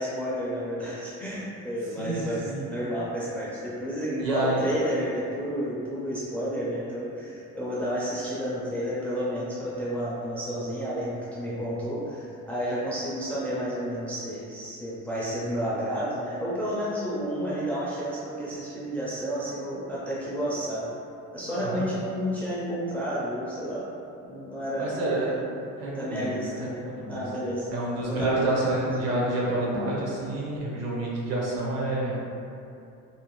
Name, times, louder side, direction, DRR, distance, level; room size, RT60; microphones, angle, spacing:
voice 1, 0.0-20.9 21.3-23.9 24.2-24.9 26.0-26.8 27.1-27.7 28.1-28.5, equal, 5° left, -8 dB, 0.4 m, -31 dB
voice 2, 2.0-2.7 4.2-4.7 21.6-21.8 24.8-25.4 25.8-27.2 27.7-32.2, right 2 dB, 55° right, -5 dB, 0.7 m, -29 dB
2.7 x 2.0 x 3.0 m, 2.6 s
cardioid pair, 135°, 30 cm